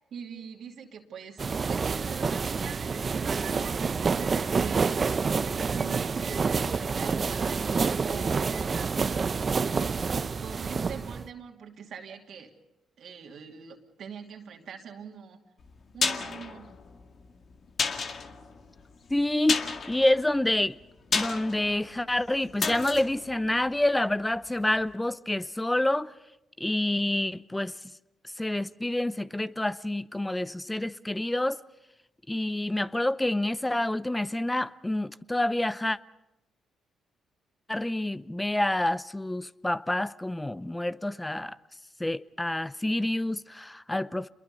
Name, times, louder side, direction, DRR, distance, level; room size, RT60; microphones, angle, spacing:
voice 1, 0.0-7.7 8.1-9.0 9.7-12.5 13.0-15.4 15.9-16.7, right 7 dB, 65° right, 2.7 m, -43 dB
sound 1, 1.4-11.3, right 5 dB, 45° right, 0.8 m, -28 dB
sound 2, 2.6-10.0, right 10 dB, 80° right, 2.9 m, -51 dB
sound 3, 15.6-24.5 24.7-24.8, left 5 dB, 55° left, 1.9 m, -33 dB
voice 2, 19.1-20.8 21.1-26.1 26.6-27.8 28.4-31.6 32.3-36.0 37.7-41.6 42.0-44.3, left 1 dB, 15° left, 0.7 m, -28 dB
28.0 x 22.0 x 5.5 m
hypercardioid pair, 50°, 0 cm